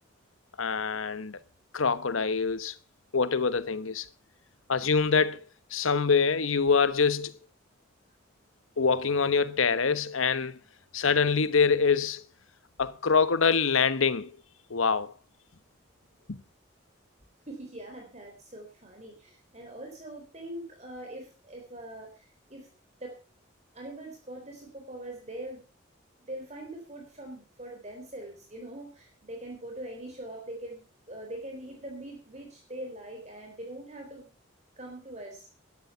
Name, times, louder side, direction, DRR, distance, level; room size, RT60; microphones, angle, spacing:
voice 1, 0.6-1.4 1.7-2.8 3.1-4.1 4.7-7.4 8.8-10.6 10.9-12.2 12.8-14.4 14.7-15.1 16.3-16.4, left 5 dB, 90° left, 1.0 m, -25 dB
voice 2, 17.5-22.7 23.0-23.2 23.7-25.6 26.3-34.3 34.8-35.5, right 1 dB, 35° right, 4.0 m, -42 dB
12.5 x 12.0 x 5.6 m
head